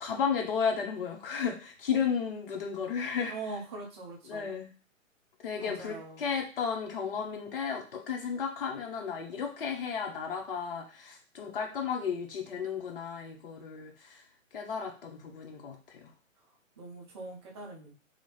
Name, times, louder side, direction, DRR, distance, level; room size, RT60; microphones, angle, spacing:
voice 1, 0.0-3.3 4.3-4.7 5.4-14.2 14.5-16.0, left 6 dB, 45° left, 1 dB, 0.8 m, -33 dB
voice 2, 3.2-4.6 5.6-6.3 16.8-17.9, right 3 dB, 20° right, -3 dB, 0.6 m, -42 dB
2.8 x 2.8 x 3.0 m, 0.36 s
figure-of-eight pair, 125°, 40 cm